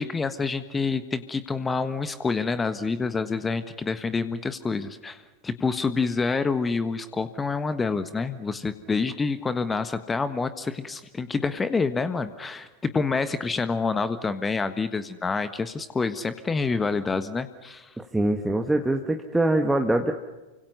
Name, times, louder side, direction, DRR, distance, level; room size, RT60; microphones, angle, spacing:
voice 1, 0.0-17.9, left 4 dB, 15° left, 12 dB, 1.4 m, -27 dB
voice 2, 18.0-20.1, right 1 dB, 5° right, 3 dB, 1.6 m, -23 dB
29.5 x 25.0 x 5.6 m, 1.1 s
figure-of-eight pair, 90°, 0 cm